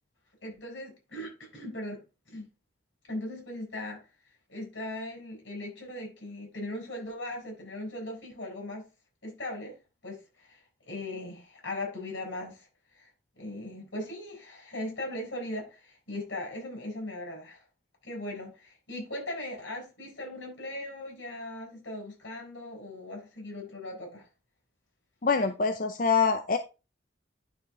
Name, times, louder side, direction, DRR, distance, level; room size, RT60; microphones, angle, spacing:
voice 1, 0.4-2.0 2.3-2.5 3.1-4.0 4.5-8.8 9.2-9.7 10.0-12.7 12.9-13.1 13.4-17.6 18.0-24.3, left 1 dB, 85° left, 6.1 m, -39 dB
voice 2, 25.2-26.6, left 5 dB, 45° left, 0.6 m, -25 dB
11.5 x 5.1 x 3.7 m
head